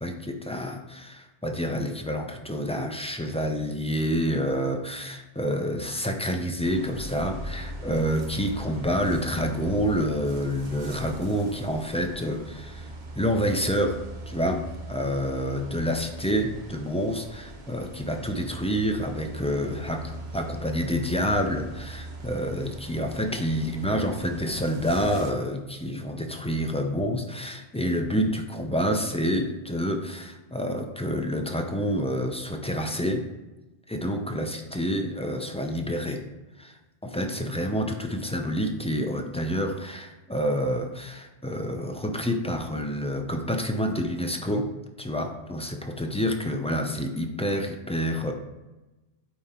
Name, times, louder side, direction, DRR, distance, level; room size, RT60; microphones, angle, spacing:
voice 1, 0.0-12.9 13.2-33.3 33.9-36.2 36.6-36.8 37.0-44.7 45.0-48.3, equal, 10° left, 3 dB, 0.4 m, -28 dB
sound 1, 6.6-25.3, right 1 dB, 50° right, 0.9 m, -40 dB
8.5 x 3.5 x 4.3 m, 1.1 s
omnidirectional pair, 1.1 m